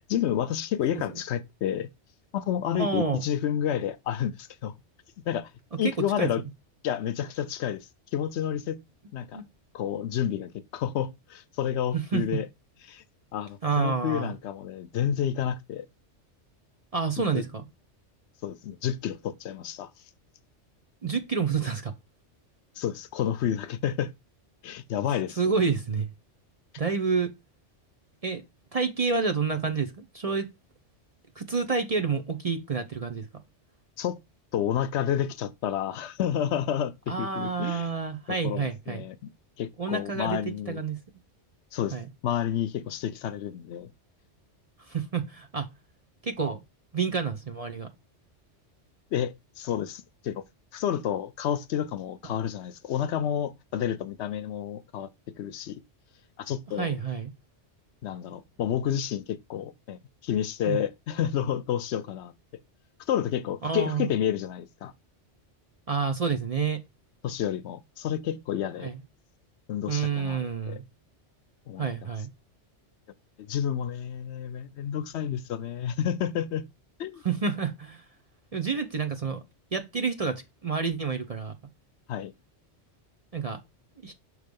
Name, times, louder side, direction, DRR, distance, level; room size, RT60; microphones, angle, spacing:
voice 1, 0.1-1.9 2.3-4.7 5.3-5.5 5.8-6.4 6.8-8.8 9.1-9.4 9.7-12.5 12.8-13.0 13.3-15.9 17.3-17.4 18.4-19.9 22.8-24.1 24.6-25.6 34.0-34.2 34.5-37.9 38.3-39.1 39.6-40.8 41.7-42.0 42.2-43.9 49.1-50.4 50.7-55.1 55.4-55.8 56.4-57.0 58.0-62.3 63.1-64.9 67.2-68.9 69.7-70.8 71.7-71.8 73.4-76.6 77.0-77.2 82.1-82.3, left 9 dB, 70° left, 0.8 m, -30 dB
voice 2, 2.8-3.2 5.8-6.5 9.3-9.4 11.9-12.2 13.6-14.3 16.9-17.6 21.0-21.9 25.3-26.1 26.8-27.3 28.2-28.4 28.7-30.5 31.4-33.3 37.1-39.0 39.8-40.4 40.7-41.0 41.9-42.1 44.8-45.7 46.2-46.6 46.9-47.9 56.8-57.3 60.7-60.8 63.6-64.1 65.9-66.8 68.8-69.0 69.9-70.8 71.8-72.3 77.2-78.0 78.5-79.4 79.7-81.5 83.3-83.6 84.0-84.1, right 5 dB, 40° right, 0.6 m, -29 dB
6.3 x 3.3 x 5.2 m
omnidirectional pair, 1.2 m